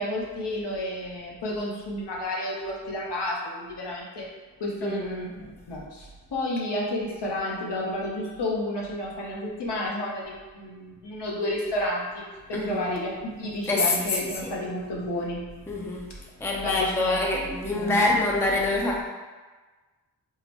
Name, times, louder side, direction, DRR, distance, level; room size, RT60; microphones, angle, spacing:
voice 1, 0.0-4.3 4.6-12.2 12.5-15.4 16.6-17.2 17.7-18.1, left 1 dB, 70° left, -3 dB, 0.9 m, -31 dB
voice 2, 4.8-5.3 12.5-12.9 13.7-14.5 15.7-19.0, left 2 dB, 5° left, -1 dB, 0.5 m, -26 dB
3.7 x 2.1 x 2.9 m, 1.3 s
cardioid pair, 40°, 43 cm